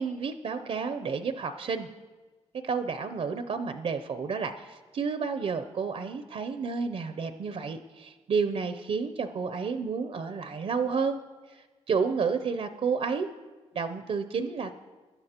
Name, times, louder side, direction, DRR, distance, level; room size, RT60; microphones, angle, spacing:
voice 1, 0.0-1.9 2.6-11.2 11.5-11.6 11.9-13.3 13.7-14.7, right 5 dB, 60° right, 9 dB, 0.5 m, -30 dB
16.5 x 11.5 x 2.9 m, 1.3 s
cardioid pair, 75°, 12 cm